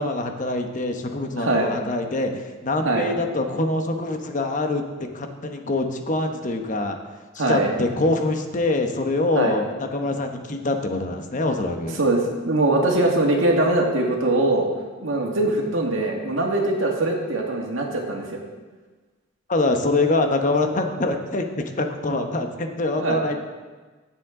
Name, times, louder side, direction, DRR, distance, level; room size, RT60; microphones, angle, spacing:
voice 1, 0.0-7.0 7.5-12.0 19.5-23.4, left 2 dB, 40° left, 5 dB, 1.0 m, -24 dB
voice 2, 1.4-1.7 2.8-3.1 7.4-7.7 9.4-9.5 12.0-14.7 15.0-18.4 23.0-23.2, right 2 dB, 80° right, 0 dB, 1.9 m, -22 dB
16.0 x 7.5 x 3.7 m, 1.3 s
head